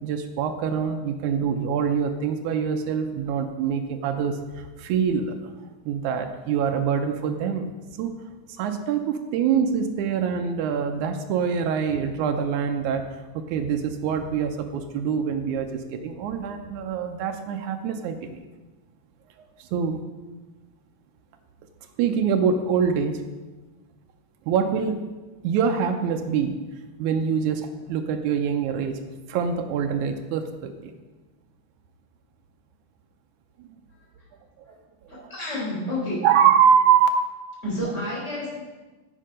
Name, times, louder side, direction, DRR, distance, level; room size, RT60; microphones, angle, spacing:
voice 1, 0.0-5.5 5.9-7.7 8.0-8.1 8.5-13.1 13.3-18.4 19.6-20.0 22.0-23.2 24.5-25.0 25.4-26.6 27.0-29.0 29.3-30.9 33.6-33.7 34.7-34.8 35.2-35.3 36.2-37.1, right 7 dB, 90° right, 6 dB, 2.1 m, -24 dB
voice 2, 35.1-36.3 37.6-38.5, left 1 dB, 25° left, -5 dB, 4.1 m, -30 dB
9.9 x 7.5 x 5.1 m, 1.2 s
omnidirectional pair, 3.4 m